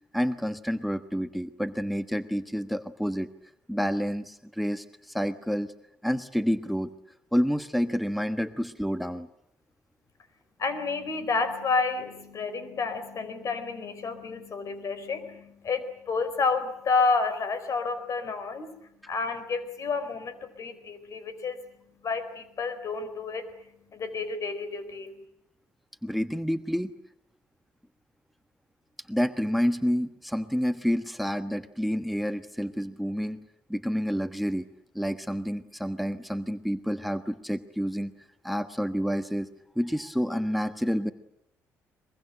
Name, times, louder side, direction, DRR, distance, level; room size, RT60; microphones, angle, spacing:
voice 1, 0.1-3.3 3.7-5.7 6.0-6.9 7.3-9.3 26.0-26.9 29.1-33.4 33.7-34.6 34.9-38.1 38.4-39.5 39.7-41.1, equal, ahead, 11 dB, 1.3 m, -29 dB
voice 2, 10.6-18.7 19.1-21.6 22.0-25.2, left 4 dB, 55° left, 12 dB, 4.4 m, -30 dB
23.0 x 23.0 x 9.1 m, 0.79 s
supercardioid pair, 60°, 7 cm